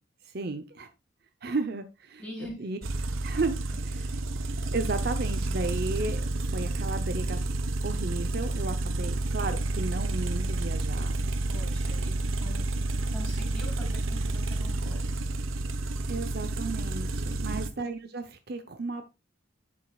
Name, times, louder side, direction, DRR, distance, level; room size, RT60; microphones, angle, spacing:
voice 1, 0.2-0.9 1.4-2.2 2.6-2.8 3.2-4.0 4.6-7.4 7.8-11.1 16.1-19.0, right 3 dB, 50° right, 9 dB, 0.7 m, -34 dB
voice 2, 2.2-2.7 3.0-3.2 3.9-4.2 8.9-9.1 11.5-12.8 13.1-15.3, left 1 dB, 5° left, -2 dB, 4.6 m, -44 dB
sound 1, 2.8-17.7, right 2 dB, 85° right, 1.0 m, -30 dB
11.0 x 7.3 x 2.4 m, 0.26 s
head